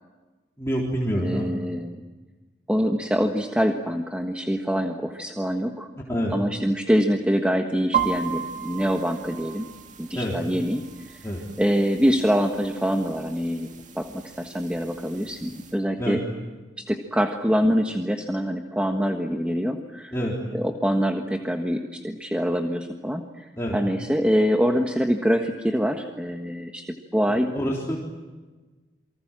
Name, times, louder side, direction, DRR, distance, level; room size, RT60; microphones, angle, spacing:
voice 1, 0.6-1.5 6.1-6.3 10.1-10.4 11.2-11.4 16.0-16.2 20.1-20.3 23.6-23.8 27.3-28.0, equal, 15° left, -4 dB, 3.9 m, -27 dB
voice 2, 1.1-2.0 2.7-5.9 6.3-9.6 10.0-11.2 11.6-13.7 13.9-16.2 16.8-20.1 20.5-26.8 27.1-27.5, equal, 5° right, 3 dB, 1.5 m, -25 dB
sound 1, 7.9-15.7, right 8 dB, 45° right, 2.1 m, -35 dB
28.5 x 24.5 x 7.6 m, 1.3 s
head